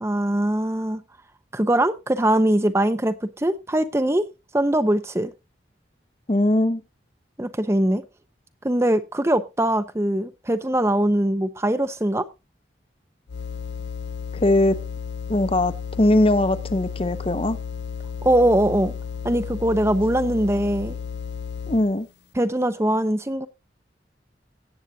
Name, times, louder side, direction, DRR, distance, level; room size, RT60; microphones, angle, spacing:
voice 1, 0.0-1.0 1.5-4.2 4.5-5.3 7.4-8.0 8.6-12.2 18.2-18.9 19.2-21.0 22.4-23.5, right 1 dB, 15° right, 0.6 m, -21 dB
voice 2, 6.3-6.8 14.3-14.8 15.3-17.6 21.7-22.1, left 1 dB, 30° left, 0.7 m, -20 dB
sound 1, 13.3-22.0, left 6 dB, 75° left, 0.6 m, -33 dB
17.5 x 8.0 x 2.7 m
head